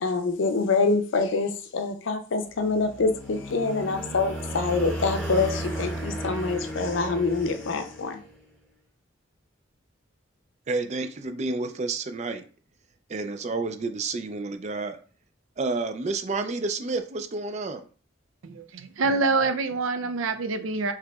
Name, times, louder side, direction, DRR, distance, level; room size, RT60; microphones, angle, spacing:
voice 1, 0.0-8.2, left 4 dB, 65° left, 7 dB, 0.5 m, -26 dB
sound 1, 2.6-8.4, right 1 dB, 5° left, 1.1 m, -34 dB
voice 2, 10.7-12.4 13.1-15.0 15.6-17.9, right 3 dB, 35° right, 8 dB, 0.4 m, -30 dB
voice 3, 18.4-20.9, right 3 dB, 85° right, 9 dB, 0.5 m, -26 dB
4.8 x 2.9 x 2.3 m, 0.39 s
head